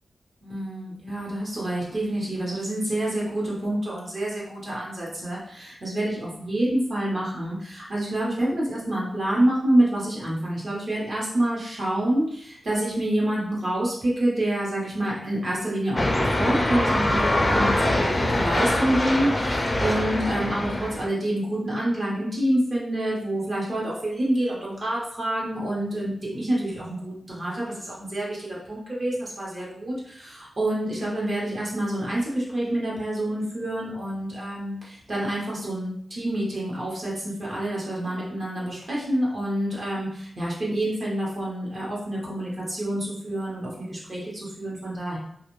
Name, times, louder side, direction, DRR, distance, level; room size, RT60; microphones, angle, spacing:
voice 1, 0.4-45.2, right 1 dB, 50° right, -5 dB, 1.0 m, -27 dB
sound 1, 16.0-21.1, left 1 dB, 30° left, 0.4 m, -23 dB
2.5 x 2.3 x 3.0 m, 0.69 s
wide cardioid pair, 95°, 0 cm